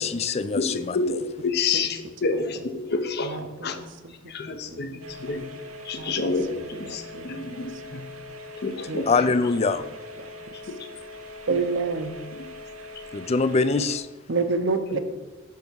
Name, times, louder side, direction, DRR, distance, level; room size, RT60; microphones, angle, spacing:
voice 1, 0.0-1.0 9.1-10.0 13.1-14.1, left 4 dB, 30° left, 13 dB, 0.4 m, -23 dB
voice 2, 0.5-3.8 4.1-5.5 5.8-8.1 8.6-9.4 10.5-10.9 11.5-11.6 12.3-12.5 14.9-15.0, left 4 dB, 50° left, 8 dB, 0.7 m, -29 dB
voice 3, 3.2-4.1 4.5-5.0 5.3-5.4 6.0-8.0 8.9-9.3 11.5-12.2 14.3-15.0, right 4 dB, 60° right, 9 dB, 0.8 m, -30 dB
sound 1, 5.0-14.0, left 1 dB, 85° right, 0.9 m, -42 dB
10.5 x 3.5 x 6.2 m, 1.3 s
head